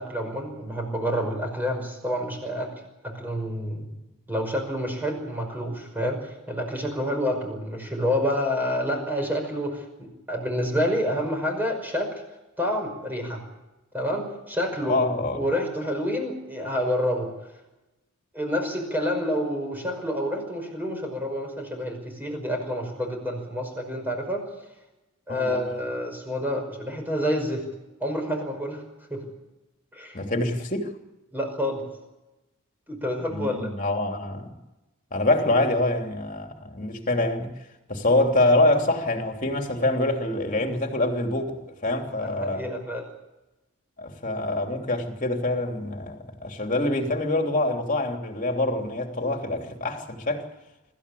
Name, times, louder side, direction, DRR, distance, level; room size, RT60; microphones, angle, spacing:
voice 1, 0.0-2.7 3.0-3.9 4.3-12.1 12.6-13.4 13.9-15.1 15.3-17.3 18.3-24.4 25.3-27.6 28.0-28.8 29.1-29.2 29.9-30.2 31.3-31.8 32.9-33.7 42.2-43.0, equal, 10° right, 5.5 m, -28 dB
voice 2, 14.8-15.4 25.3-25.6 30.1-30.9 33.3-34.5 35.1-37.5 37.9-42.7 44.0-50.5, left 2 dB, 35° left, 3.2 m, -25 dB
26.0 x 14.5 x 8.6 m
head